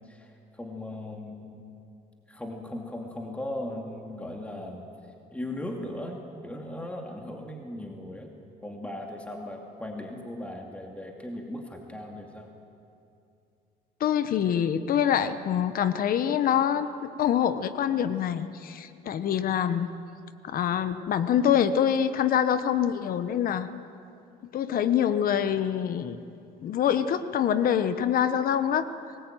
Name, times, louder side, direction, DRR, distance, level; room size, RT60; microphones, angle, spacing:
voice 1, 0.6-1.6 2.3-4.8 5.3-8.3 8.6-12.5, left 1 dB, 10° left, 1 dB, 2.4 m, -38 dB
voice 2, 14.0-19.9 20.4-23.7 24.5-26.2 26.6-28.9, left 9 dB, 60° left, 12 dB, 1.1 m, -25 dB
23.0 x 20.0 x 9.1 m, 2.6 s
cardioid pair, 110°, 17 cm